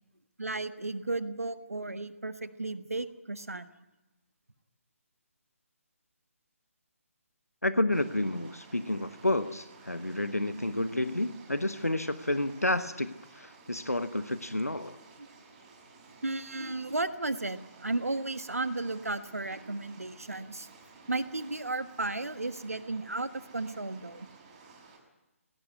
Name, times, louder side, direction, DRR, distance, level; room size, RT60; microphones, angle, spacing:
voice 1, 0.4-3.7 15.2-15.3 16.2-20.7 21.1-24.3, right 2 dB, 75° right, 11 dB, 1.4 m, -34 dB
voice 2, 7.6-15.0, left 1 dB, 85° left, 12 dB, 1.1 m, -30 dB
sound 1, 7.9-25.0, right 4 dB, 25° right, 5.6 m, -54 dB
19.0 x 18.0 x 9.7 m, 0.98 s
figure-of-eight pair, 140°, 8 cm